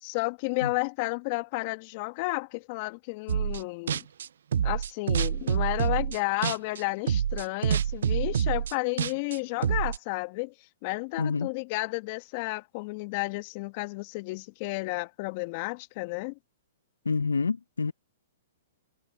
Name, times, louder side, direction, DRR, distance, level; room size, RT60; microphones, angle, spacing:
voice 1, 0.0-4.1 4.6-10.5 10.8-16.4, left 26 dB, 45° left, 1.9 m, -32 dB
sound 1, 3.3-3.6 3.9-6.8 7.1-10.0, right 8 dB, 70° right, 0.5 m, -27 dB
voice 2, 11.2-11.5 17.1-17.9, left 4 dB, 90° left, 0.8 m, -27 dB
hypercardioid pair, 120°, 0 cm